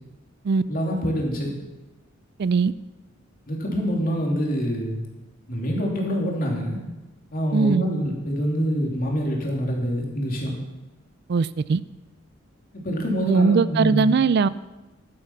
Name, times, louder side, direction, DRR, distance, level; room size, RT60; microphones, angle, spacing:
voice 1, 0.7-1.5 3.5-5.0 5.5-6.8 7.3-10.5 12.7-14.1, equal, 45° left, -1 dB, 3.0 m, -25 dB
voice 2, 2.4-2.7 7.5-7.8 11.3-11.8 13.3-14.5, right 5 dB, 55° right, 17 dB, 0.4 m, -20 dB
11.5 x 10.0 x 5.8 m, 1.1 s
head